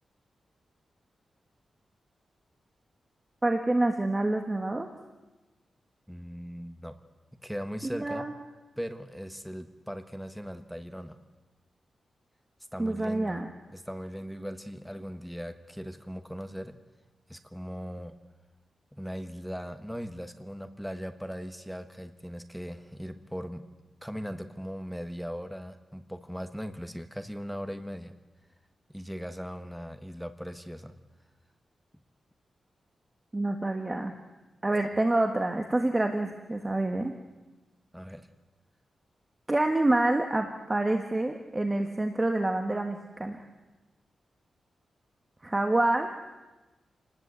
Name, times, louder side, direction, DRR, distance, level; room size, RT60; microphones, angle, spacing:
voice 1, 3.4-4.9 7.9-8.3 12.8-13.5 33.3-34.1 34.6-37.1 39.5-43.4 45.4-46.1, right 2 dB, 20° right, 5 dB, 1.6 m, -27 dB
voice 2, 6.1-7.0 7.4-8.2 8.8-11.2 12.7-13.4 13.7-16.7 17.3-18.1 18.9-23.7 24.0-28.1 28.9-30.9 37.9-38.3, equal, ahead, 7 dB, 1.3 m, -39 dB
29.0 x 19.5 x 8.3 m, 1.1 s
wide cardioid pair, 140°, 0 cm